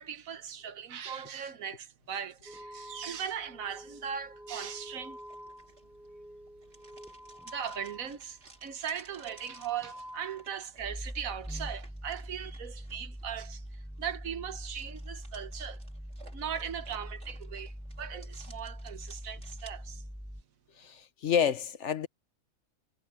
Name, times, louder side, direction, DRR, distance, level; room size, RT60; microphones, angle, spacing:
voice 1, 0.0-5.2 7.4-15.8 16.3-20.0, right 8 dB, 85° right, 1.5 m, -39 dB
sound 1, 2.5-8.7 9.0-20.4, equal, ahead, 0.4 m, -44 dB
sound 2, 4.8-19.7, right 3 dB, 55° right, 3.8 m, -58 dB
voice 2, 20.8-22.1, left 8 dB, 60° left, 1.2 m, -29 dB
omnidirectional pair, 1.4 m